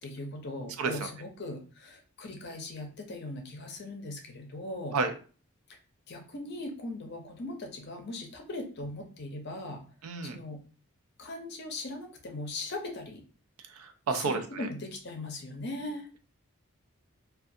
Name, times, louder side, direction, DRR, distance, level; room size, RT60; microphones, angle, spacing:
voice 1, 0.0-5.0 6.1-9.9 10.2-10.6 11.2-13.2 14.1-16.1, left 2 dB, 50° left, 3 dB, 0.5 m, -39 dB
voice 2, 10.0-10.4 13.8-14.4, right 4 dB, 80° right, 7 dB, 0.4 m, -30 dB
2.4 x 2.3 x 2.6 m, 0.38 s
head